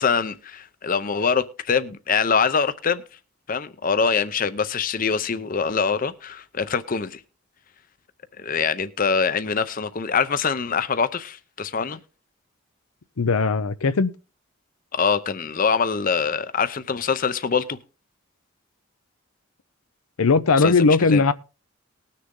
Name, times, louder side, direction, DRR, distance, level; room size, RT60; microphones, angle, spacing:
voice 1, 0.0-3.0 3.5-7.2 8.4-12.0 14.9-17.8 20.6-21.2, left 5 dB, 40° left, 0.6 m, -24 dB
voice 2, 13.2-14.1 20.2-21.3, left 4 dB, 90° left, 0.6 m, -18 dB
19.5 x 6.7 x 3.7 m
head